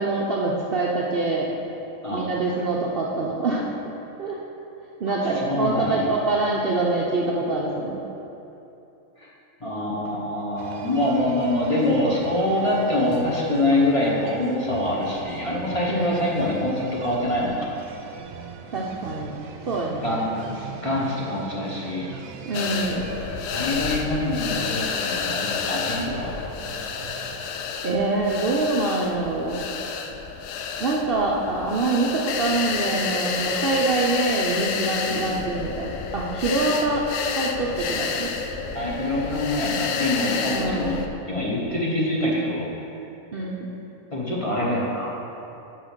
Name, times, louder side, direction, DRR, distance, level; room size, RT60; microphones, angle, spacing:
voice 1, 0.0-1.5 2.1-3.6 4.2-4.4 5.0-8.0 15.9-16.4 18.7-19.3 19.6-20.1 22.5-23.0 27.8-29.6 30.8-37.0 37.3-38.3 40.5-41.0 43.3-43.7, right 3 dB, 55° right, -3 dB, 0.7 m, -25 dB
voice 2, 5.1-6.1 9.2-9.3 9.6-17.7 20.0-22.1 23.5-26.4 35.1-35.3 38.7-41.0 41.3-42.7 44.1-45.1, left 1 dB, 25° left, -5 dB, 1.0 m, -25 dB
sound 1, 10.6-27.5, right 6 dB, 80° right, 1.0 m, -41 dB
sound 2, 22.5-41.1, left 5 dB, 75° left, 0.9 m, -29 dB
6.0 x 5.1 x 6.6 m, 2.9 s
omnidirectional pair, 1.5 m